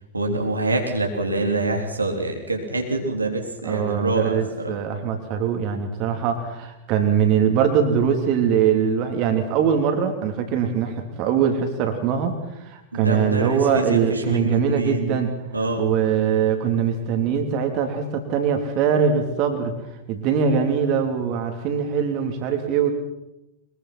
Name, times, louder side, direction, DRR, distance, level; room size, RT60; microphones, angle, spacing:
voice 1, 0.1-4.7 12.9-15.1 15.5-15.9, right 2 dB, 80° right, 2 dB, 3.1 m, -25 dB
voice 2, 3.6-15.3 15.8-19.7 20.1-22.9, right 7 dB, 40° right, 5 dB, 3.2 m, -22 dB
23.5 x 22.0 x 6.1 m, 0.90 s
figure-of-eight pair, 90°, 0 cm